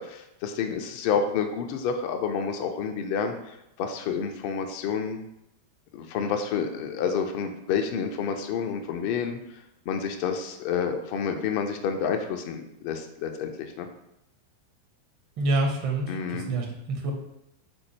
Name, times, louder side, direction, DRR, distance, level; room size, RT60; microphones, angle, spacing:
voice 1, 0.0-5.2 5.9-9.4 9.9-13.5 13.8-13.9 16.1-16.5, left 6 dB, 45° left, 5 dB, 0.4 m, -29 dB
voice 2, 15.4-17.1, right 2 dB, 40° right, 1 dB, 0.7 m, -27 dB
4.2 x 2.1 x 3.1 m, 0.83 s
figure-of-eight pair, 90°, 0 cm